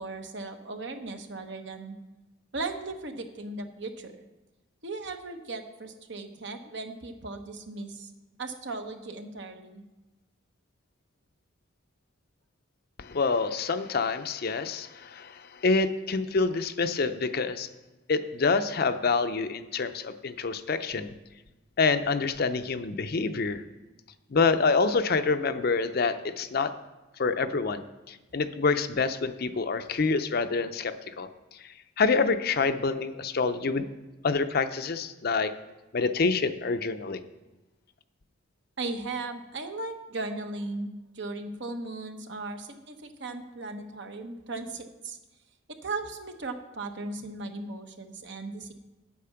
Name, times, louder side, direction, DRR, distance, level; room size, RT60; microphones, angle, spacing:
voice 1, 0.0-2.0 2.5-4.2 4.8-8.1 8.4-9.8 38.8-45.2 45.8-48.7, right 3 dB, 60° right, 6 dB, 1.0 m, -37 dB
voice 2, 13.0-17.7 18.1-21.1 21.8-23.6 24.3-26.7 27.2-33.9 34.2-35.5 35.9-37.2, left 4 dB, 50° left, 10 dB, 0.5 m, -27 dB
9.1 x 8.5 x 5.8 m, 1.1 s
head